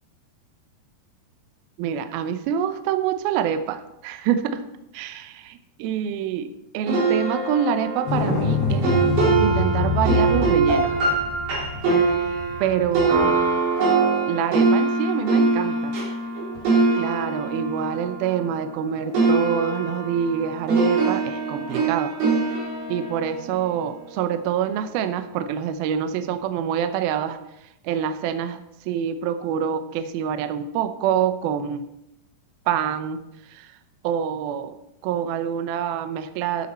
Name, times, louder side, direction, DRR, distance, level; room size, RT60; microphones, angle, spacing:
voice 1, 1.8-4.6 4.9-8.9 9.4-11.0 12.6-13.4 14.2-16.0 16.9-22.1 22.9-27.4 27.8-31.9 32.7-33.8 34.0-34.7 35.0-36.7, right 8 dB, 75° right, 9 dB, 2.3 m, -26 dB
sound 1, 6.9-18.8 19.1-24.4, right 3 dB, 60° right, 5.3 m, -23 dB
sound 2, 8.1-13.5 16.6-16.7, left 3 dB, 70° left, 3.6 m, -26 dB
14.0 x 8.5 x 4.2 m, 0.85 s
omnidirectional pair, 5.0 m